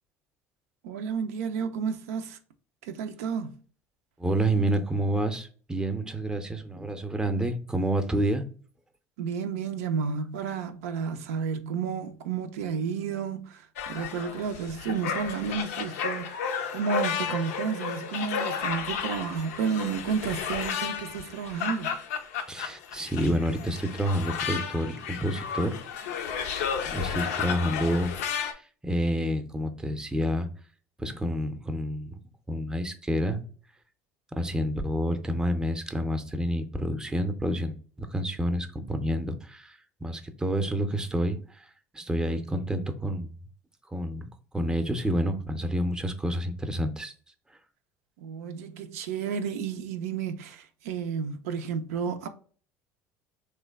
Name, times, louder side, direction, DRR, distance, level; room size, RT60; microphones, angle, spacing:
voice 1, 0.8-2.4 2.8-3.6 9.2-16.3 16.7-22.0 48.2-52.3, right 6 dB, 80° right, 0.4 m, -31 dB
voice 2, 4.2-8.5 22.5-25.8 26.8-30.5 31.0-32.2 32.5-33.4 34.4-41.6 41.9-43.3 43.9-44.3 44.5-47.1, equal, 10° right, 0.5 m, -29 dB
sound 1, 13.8-28.5, left 7 dB, 80° left, 0.4 m, -33 dB
3.1 x 2.2 x 3.4 m
hypercardioid pair, 80°, 8 cm